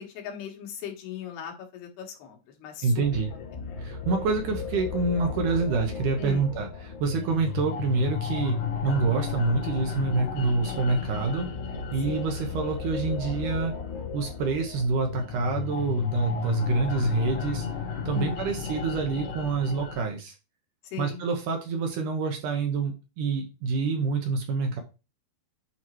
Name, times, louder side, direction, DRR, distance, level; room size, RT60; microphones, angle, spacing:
voice 1, 0.0-2.9 3.5-3.6 6.2-6.5 12.1-12.2 18.1-18.5 20.8-21.2, left 9 dB, 90° left, 2 dB, 3.4 m, -38 dB
voice 2, 2.8-3.3 3.8-11.5 11.9-13.8 14.1-17.7 18.1-20.4 21.0-24.8, right 4 dB, 70° right, 3 dB, 2.1 m, -27 dB
sound 1, 3.0-20.0, left 6 dB, 70° left, 2.7 m, -33 dB
8.6 x 3.0 x 4.5 m, 0.30 s
omnidirectional pair, 4.4 m